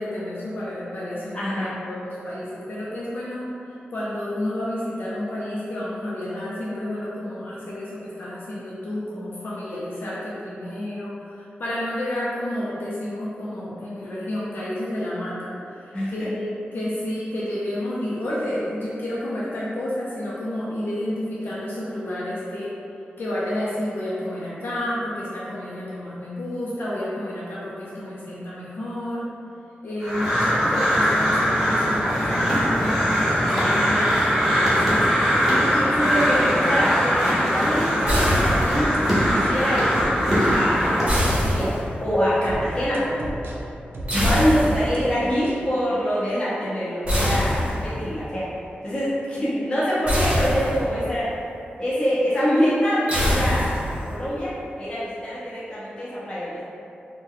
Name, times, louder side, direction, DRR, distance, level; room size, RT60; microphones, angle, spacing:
voice 1, 0.0-22.7 23.2-29.3 29.8-35.1, left 1 dB, 65° left, -8 dB, 0.5 m, -30 dB
voice 2, 1.3-1.8 15.9-16.3 35.5-39.0 39.3-40.0 40.5-41.7 42.0-43.3 44.1-48.5 48.8-51.3 51.8-56.6, equal, 25° left, -10 dB, 0.9 m, -25 dB
Crow, 30.0-41.1, equal, 5° right, 1.0 m, -21 dB
sound 1, 38.1-39.0 41.1-42.2 44.1-45.0 47.1-48.1 50.1-51.0 53.1-54.1, equal, 35° right, 0.8 m, -23 dB
sound 2, 38.4-41.0 41.4-41.6 42.4-45.0 45.4-45.6, right 1 dB, 75° right, 0.4 m, -34 dB
2.8 x 2.1 x 3.8 m, 2.7 s
wide cardioid pair, 160°, 4 cm